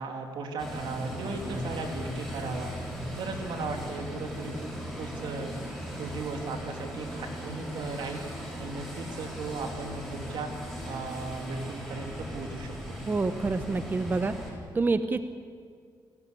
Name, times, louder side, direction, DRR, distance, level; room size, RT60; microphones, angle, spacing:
voice 1, 0.0-2.8 3.2-4.6 5.0-5.6 6.0-8.2 8.6-10.5 10.8-13.0, right 4 dB, 80° right, 3 dB, 3.1 m, -36 dB
sound 1, 0.6-14.5, equal, 5° right, 7.6 m, -38 dB
voice 2, 13.1-14.4 14.7-15.2, right 3 dB, 25° right, 10 dB, 0.8 m, -27 dB
27.5 x 14.5 x 8.5 m, 2.1 s
cardioid pair, 110°, 8 cm